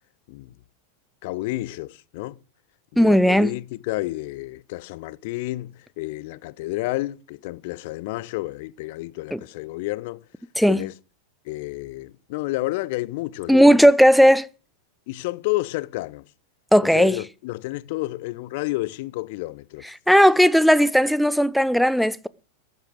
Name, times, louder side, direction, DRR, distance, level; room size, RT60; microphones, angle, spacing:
voice 1, 1.2-2.4 2.9-10.2 10.7-10.9 11.4-13.8 15.1-16.2 16.8-19.8, left 19 dB, 50° left, 0.6 m, -30 dB
voice 2, 3.0-3.5 9.3-9.4 10.6-10.8 13.5-14.5 16.7-17.2 20.1-22.3, equal, ahead, 0.6 m, -16 dB
14.5 x 8.2 x 7.9 m
figure-of-eight pair, 90°, 0 cm